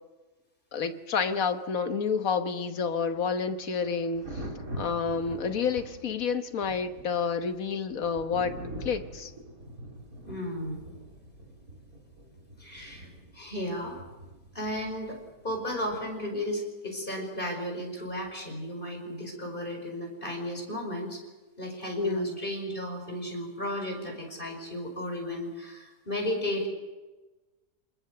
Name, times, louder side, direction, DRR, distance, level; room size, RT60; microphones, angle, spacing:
voice 1, 0.7-4.4 4.8-9.3 22.0-22.4, left 5 dB, 60° left, 8 dB, 1.5 m, -29 dB
Thunder, 2.8-16.4 18.1-18.3, right 1 dB, 60° right, 4.4 m, -44 dB
voice 2, 10.3-10.8 12.6-13.1 13.3-14.0 14.5-15.2 15.4-21.2 21.6-26.7, left 1 dB, 30° left, 2 dB, 5.3 m, -34 dB
27.5 x 20.5 x 6.7 m, 1.2 s
omnidirectional pair, 1.7 m